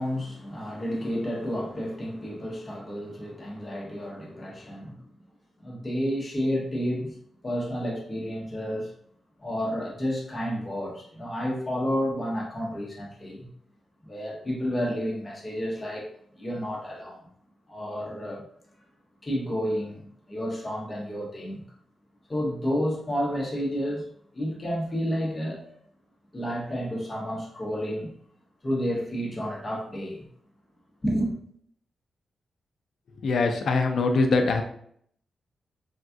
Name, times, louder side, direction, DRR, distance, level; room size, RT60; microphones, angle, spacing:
voice 1, 0.0-5.0 5.6-7.2 7.4-8.9 9.4-13.5 14.0-16.1 16.4-17.2 17.7-18.4 19.2-21.6 22.3-24.1 24.3-25.8 26.3-28.1 28.6-30.3 31.0-31.3, equal, 20° left, -2 dB, 0.7 m, -30 dB
voice 2, 33.2-34.6, left 3 dB, 60° left, 5 dB, 0.4 m, -23 dB
3.4 x 2.3 x 2.5 m, 0.66 s
wide cardioid pair, 180°, 0 cm